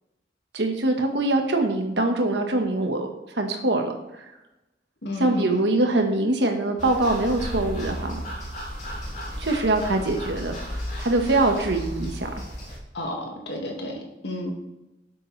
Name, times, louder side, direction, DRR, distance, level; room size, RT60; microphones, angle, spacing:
voice 1, 0.5-3.1 3.3-3.9 5.2-8.2 9.4-12.3, right 2 dB, 75° right, 4 dB, 1.4 m, -23 dB
voice 2, 5.0-5.7 12.9-14.5, left 1 dB, 75° left, 1 dB, 1.9 m, -31 dB
sound 1, 6.8-12.8, equal, 40° left, 2.9 m, -34 dB
12.5 x 7.6 x 3.3 m, 0.97 s
head